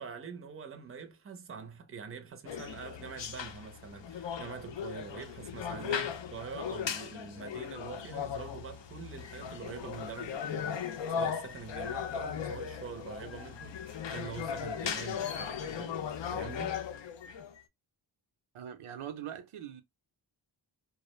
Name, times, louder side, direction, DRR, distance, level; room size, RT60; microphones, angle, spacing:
voice 1, 0.0-16.0 16.3-16.8, right 6 dB, 30° right, 0.5 m, -45 dB
sound 1, 2.5-17.6, left 8 dB, 65° left, 0.5 m, -37 dB
voice 2, 5.8-6.1 18.5-19.8, right 9 dB, 85° right, 0.6 m, -42 dB
2.3 x 2.0 x 2.9 m
wide cardioid pair, 75°, 48 cm